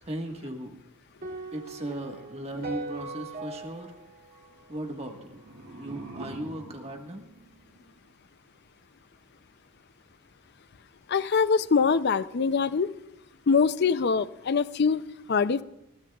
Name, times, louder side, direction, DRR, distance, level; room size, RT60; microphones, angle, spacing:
voice 1, 0.0-0.8 1.5-3.9 4.7-7.2, right 1 dB, 30° right, 3 dB, 1.5 m, -37 dB
sound 1, 1.2-5.5, right 2 dB, 50° right, 3.1 m, -40 dB
sound 2, 5.1-8.1, right 2 dB, 85° right, 2.5 m, -45 dB
voice 2, 11.1-12.9 13.5-15.0 15.3-15.6, left 5 dB, 50° left, 15 dB, 0.5 m, -23 dB
21.0 x 17.0 x 2.4 m, 0.87 s
head